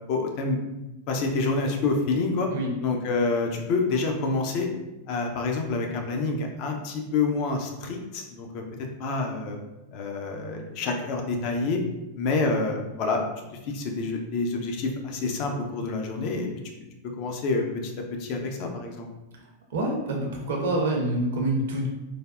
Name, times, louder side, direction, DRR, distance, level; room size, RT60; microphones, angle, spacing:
voice 1, 0.1-0.6 1.1-2.5 2.8-4.7 5.1-8.6 9.0-9.6 9.9-11.8 12.2-13.2 13.6-16.5 17.0-19.1, left 3 dB, 45° left, 2 dB, 0.5 m, -27 dB
voice 2, 19.7-21.9, right 1 dB, 60° right, 0 dB, 0.6 m, -26 dB
3.3 x 2.2 x 2.4 m, 1.0 s
figure-of-eight pair, 90°, 0 cm